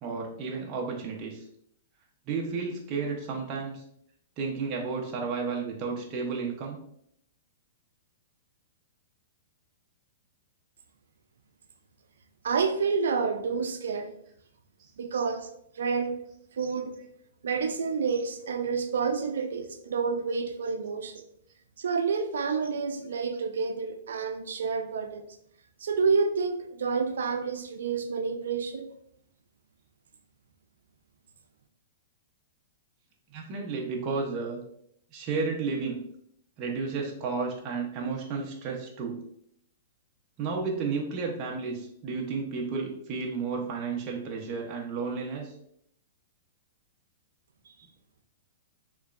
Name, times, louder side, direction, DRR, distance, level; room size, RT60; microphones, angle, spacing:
voice 1, 0.0-1.4 2.3-3.8 4.4-6.8 33.3-34.6 35.1-36.0 36.6-39.2 40.4-45.5, right 4 dB, 35° right, -1 dB, 0.8 m, -32 dB
voice 2, 12.4-14.1 15.0-15.5 15.8-16.2 16.6-16.9 17.4-21.2 21.8-25.3 25.8-28.9, right 5 dB, 85° right, 8 dB, 0.5 m, -29 dB
4.5 x 3.1 x 2.5 m, 0.70 s
hypercardioid pair, 135°, 0 cm